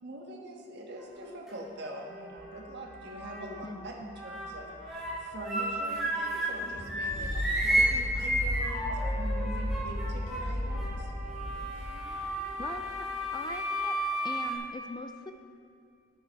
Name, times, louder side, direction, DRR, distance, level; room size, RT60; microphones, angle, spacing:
voice 1, 0.0-11.1 11.7-11.9, right 1 dB, 55° right, 0 dB, 1.5 m, -43 dB
sound 1, 1.0-1.5 1.9-3.7 4.1-6.6 6.9-14.5, right 1 dB, ahead, 2.1 m, -33 dB
sound 2, 2.4-11.0, left 1 dB, 40° left, 2.3 m, -55 dB
voice 2, 3.6-4.1 12.6-13.1 13.3-14.0 14.2-15.3, left 2 dB, 20° left, 7 dB, 0.4 m, -41 dB
sound 3, 4.9-13.0, left 1 dB, 80° left, 3.0 m, -35 dB
11.0 x 9.6 x 4.6 m, 2.3 s
head